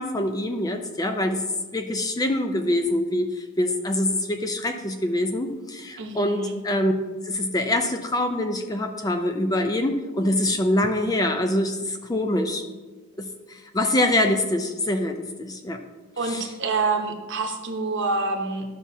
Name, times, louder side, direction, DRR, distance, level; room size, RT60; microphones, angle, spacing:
voice 1, 0.0-1.4 1.7-6.9 7.3-12.6 13.2-15.8 16.2-16.5, left 1 dB, 15° left, 5 dB, 0.4 m, -25 dB
voice 2, 6.0-6.6 16.2-18.6, right 3 dB, 55° right, 4 dB, 0.9 m, -27 dB
12.0 x 6.0 x 2.7 m, 1.3 s
head